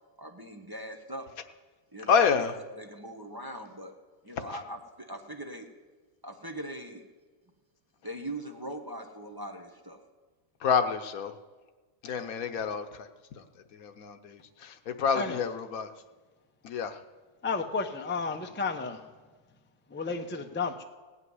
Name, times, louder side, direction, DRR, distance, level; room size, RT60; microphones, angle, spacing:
voice 1, 0.2-1.3 1.9-2.3 2.8-3.9 4.2-5.7 6.2-7.0 8.0-10.0, right 1 dB, 20° right, 2 dB, 0.9 m, -40 dB
voice 2, 2.1-2.5 10.6-11.3 12.0-13.1 13.4-13.5 13.7-15.9 16.6-17.0, left 6 dB, 90° left, 8 dB, 1.3 m, -28 dB
voice 3, 17.4-19.0 19.9-20.8, left 4 dB, 10° left, 6 dB, 0.5 m, -32 dB
17.0 x 5.8 x 9.5 m, 1.4 s
omnidirectional pair, 1.4 m